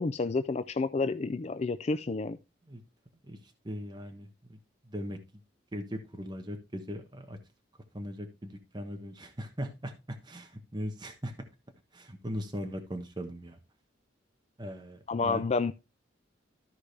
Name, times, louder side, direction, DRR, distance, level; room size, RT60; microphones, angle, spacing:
voice 1, 0.0-2.4 15.1-15.7, left 3 dB, 35° left, 0.4 m, -30 dB
voice 2, 3.2-4.6 4.8-5.2 5.7-7.4 7.9-11.3 11.9-13.6 14.6-15.4, equal, 25° right, 1.2 m, -39 dB
13.5 x 4.9 x 3.3 m
head